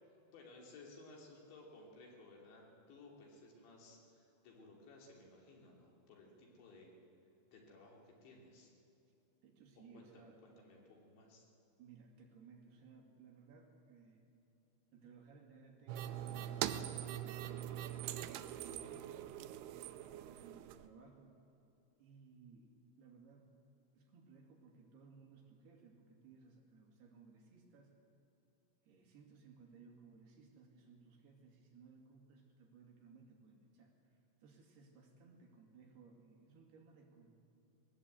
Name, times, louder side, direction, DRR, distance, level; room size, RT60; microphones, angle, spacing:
voice 1, 0.0-6.9 7.5-8.7 9.9-11.5, left 2 dB, 75° left, -1 dB, 5.2 m, -58 dB
voice 2, 9.4-11.0 11.8-14.3 14.9-19.2 20.1-21.4 22.0-23.5 24.0-27.9 28.9-33.9 34.4-37.4, right 5 dB, 65° right, 0 dB, 4.2 m, -61 dB
sound 1, 15.9-20.9, right 11 dB, 85° right, 2.3 m, -43 dB
21.0 x 19.0 x 8.2 m, 2.7 s
omnidirectional pair, 5.2 m